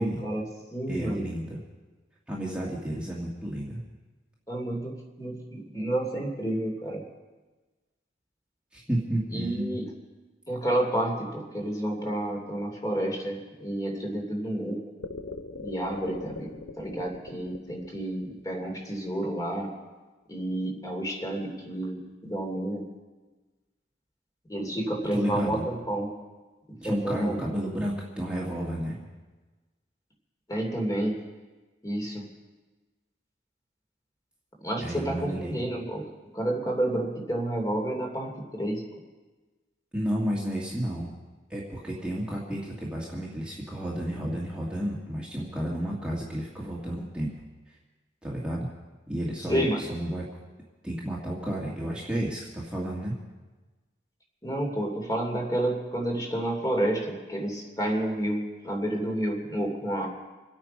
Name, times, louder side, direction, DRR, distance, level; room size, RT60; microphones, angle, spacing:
voice 1, 0.0-1.3 4.5-7.0 9.3-9.9 10.5-14.8 15.6-19.8 20.3-22.9 24.5-26.1 26.7-27.4 30.5-31.3 31.8-32.3 34.6-36.1 36.3-38.9 49.5-49.8 54.4-60.1, right 1 dB, 20° left, 1 dB, 2.9 m, -30 dB
voice 2, 0.9-1.6 2.3-3.8 8.7-9.8 25.1-25.6 26.8-29.0 34.8-35.6 39.9-41.1 41.5-47.3 47.7-47.8 48.2-48.7 49.1-50.2 50.8-53.1, equal, 5° right, -5 dB, 2.0 m, -31 dB
sound 1, 15.0-19.2, left 3 dB, 80° left, 0.9 m, -41 dB
27.0 x 9.0 x 5.4 m, 1.2 s
head